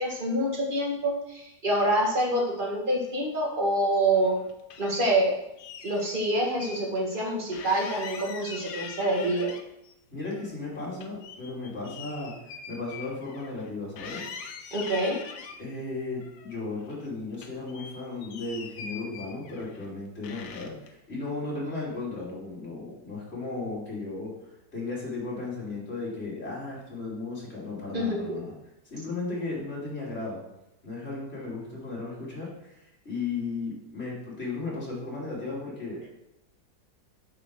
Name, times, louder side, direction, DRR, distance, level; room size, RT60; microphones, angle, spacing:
voice 1, 0.0-4.4 4.8-5.4 5.8-9.5 14.7-15.2 27.9-28.4, right 1 dB, 30° right, -1 dB, 1.9 m, -26 dB
sound 1, 4.1-5.1 5.6-6.8 7.1-7.2 7.5-9.9 10.3-13.7 14.0-15.6 16.2-17.1 17.3-19.9 20.2-20.9, left 6 dB, 90° left, 1.5 m, -43 dB
voice 2, 10.1-12.3 12.7-14.3 15.6-24.3 24.7-28.5 28.9-30.4 30.8-36.1, left 3 dB, 35° left, -5 dB, 3.4 m, -35 dB
8.6 x 5.0 x 6.3 m, 0.86 s
omnidirectional pair, 2.0 m